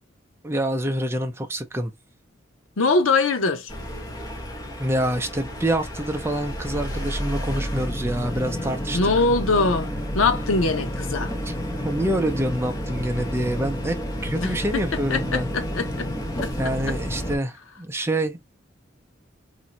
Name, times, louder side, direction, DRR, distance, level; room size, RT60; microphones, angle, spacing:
voice 1, 0.4-1.9 4.8-9.0 11.5-11.6 11.8-14.0 14.2-15.5 16.6-18.4, right 1 dB, 10° right, 0.5 m, -26 dB
voice 2, 2.8-3.7 8.9-11.3 14.3-16.1 16.4-17.0, left 3 dB, 90° left, 0.7 m, -23 dB
sound 1, 3.7-17.4, equal, 20° left, 0.8 m, -30 dB
3.0 x 2.6 x 2.8 m
head